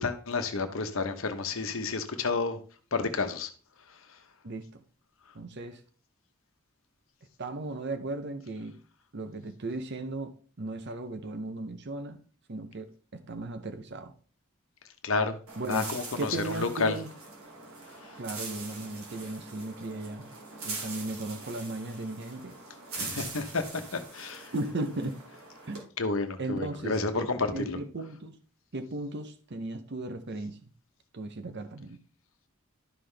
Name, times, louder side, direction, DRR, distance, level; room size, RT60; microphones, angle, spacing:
voice 1, 0.0-2.6 2.9-3.5 3.9-4.2 15.0-15.4 15.7-17.0 18.0-18.1 22.9-23.6 23.9-24.5 26.0-27.8, left 4 dB, 65° left, 7 dB, 1.0 m, -30 dB
voice 2, 4.4-4.8 5.3-5.8 7.4-8.8 9.1-12.2 12.5-14.1 15.6-15.8 16.2-17.1 18.2-20.3 20.6-22.6 24.5-25.1 25.7-25.9 26.4-28.4 28.7-30.7 31.1-32.0, right 2 dB, 50° right, 8 dB, 0.7 m, -36 dB
sound 1, 15.5-25.8, right 3 dB, 70° right, 2.6 m, -43 dB
12.0 x 5.6 x 3.4 m, 0.40 s
head